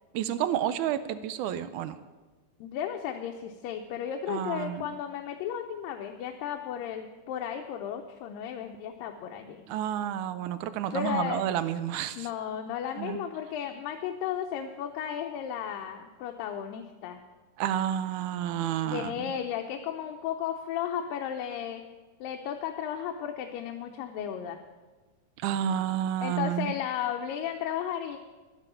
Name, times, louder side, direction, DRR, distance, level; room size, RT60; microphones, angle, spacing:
voice 1, 0.1-2.0 4.3-4.9 9.7-12.3 13.0-13.2 17.6-19.3 25.4-26.7, right 10 dB, 80° right, 13 dB, 1.9 m, -30 dB
voice 2, 2.6-9.7 10.9-11.4 12.2-17.2 18.8-21.8 22.2-24.6 26.2-28.2, left 9 dB, 90° left, 3 dB, 2.5 m, -34 dB
11.5 x 10.5 x 6.9 m, 1.3 s
omnidirectional pair, 3.9 m